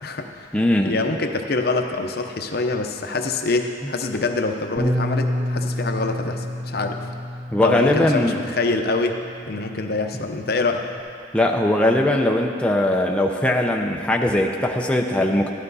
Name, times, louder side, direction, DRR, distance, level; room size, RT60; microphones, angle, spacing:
voice 1, 0.0-0.5 0.8-7.1 7.6-10.9, left 3 dB, 55° left, 5 dB, 0.8 m, -25 dB
voice 2, 0.5-0.9 7.5-8.4 11.3-15.5, left 1 dB, 5° left, 1 dB, 0.6 m, -20 dB
Bass guitar, 4.8-11.0, left 1 dB, 25° right, 2.1 m, -29 dB
14.0 x 11.5 x 4.1 m, 2.3 s
head